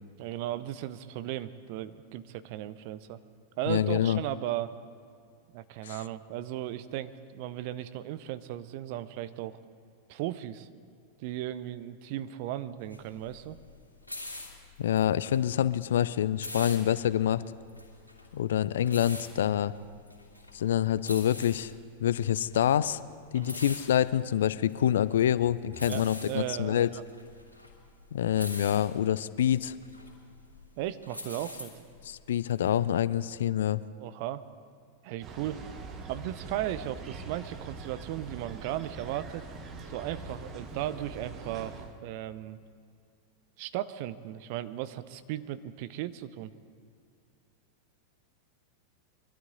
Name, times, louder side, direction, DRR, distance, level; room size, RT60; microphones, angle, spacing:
voice 1, 0.2-3.2 3.6-4.7 5.5-9.6 10.1-10.7 11.2-13.6 23.3-23.6 25.9-27.0 30.8-31.7 34.0-34.4 35.0-35.6 36.1-39.5 39.9-42.6 43.6-46.5, right 13 dB, 45° right, 13 dB, 0.6 m, -36 dB
voice 2, 3.7-4.2 5.8-5.9 14.8-17.4 18.3-19.7 20.5-21.7 22.0-23.0 23.3-26.9 28.1-29.7 32.1-33.8, left 10 dB, 60° left, 17 dB, 0.4 m, -26 dB
sound 1, 12.8-32.7, left 2 dB, 90° left, 2.6 m, -45 dB
sound 2, 35.2-42.0, right 3 dB, 30° right, 1.3 m, -43 dB
23.5 x 12.5 x 3.8 m, 2.3 s
figure-of-eight pair, 90°, 0 cm